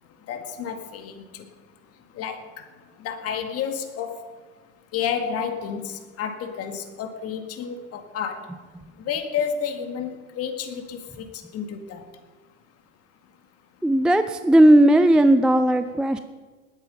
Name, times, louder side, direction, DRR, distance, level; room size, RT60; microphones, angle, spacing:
voice 1, 0.3-1.2 2.2-2.4 3.0-4.2 4.9-8.5 9.1-11.3 11.5-12.0, left 7 dB, 40° left, 7 dB, 2.0 m, -30 dB
voice 2, 13.8-16.2, right 1 dB, ahead, 10 dB, 0.4 m, -16 dB
19.5 x 9.1 x 5.4 m, 1.4 s
hypercardioid pair, 110°, 37 cm